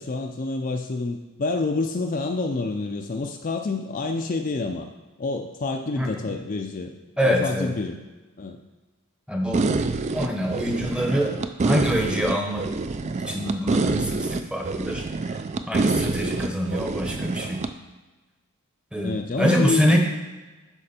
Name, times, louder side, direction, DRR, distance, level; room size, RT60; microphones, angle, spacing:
voice 1, 0.0-4.9 5.2-6.9 7.2-8.0 8.4-8.6 10.6-10.9 16.3-16.4 19.0-20.0, left 3 dB, 35° left, 4 dB, 0.4 m, -28 dB
voice 2, 7.2-7.7 9.3-9.7 10.1-11.3 11.6-12.7 13.1-15.4 15.7-17.6 18.9-20.0, equal, 5° right, 2 dB, 0.8 m, -25 dB
sound 1, 9.5-17.7, right 3 dB, 30° right, 0.3 m, -26 dB
11.5 x 4.4 x 4.3 m, 1.2 s
head